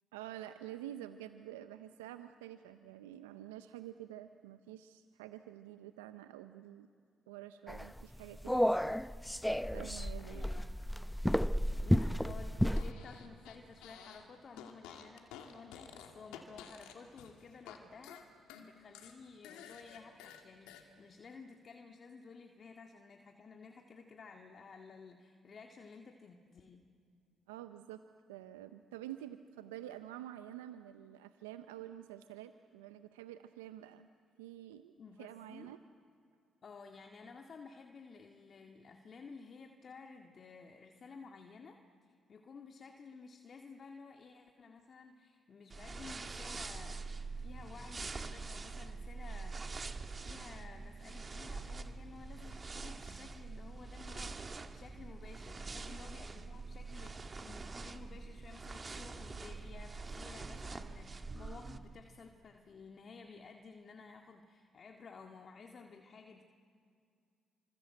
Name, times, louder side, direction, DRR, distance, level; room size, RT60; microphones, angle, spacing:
voice 1, 0.1-6.9 7.3-9.0 9.7-10.5 27.5-28.0 28.3-34.1 34.4-34.9 35.2-35.8, right 12 dB, 90° right, 10 dB, 0.6 m, -48 dB
sound 1, 7.7-12.9, equal, 5° left, 0.7 m, -32 dB
voice 2, 10.2-10.7 11.8-18.3 18.6-26.9 35.0-35.7 36.6-49.6 50.2-66.4, left 4 dB, 50° left, 3 dB, 2.0 m, -54 dB
Fart, 12.8-14.3 14.5-17.8 18.0-20.8, left 8 dB, 80° left, 2.5 m, -52 dB
sound 2, 45.7-61.8, right 3 dB, 35° right, 2.0 m, -45 dB
29.5 x 26.0 x 7.8 m, 2.4 s
hypercardioid pair, 50°, 0 cm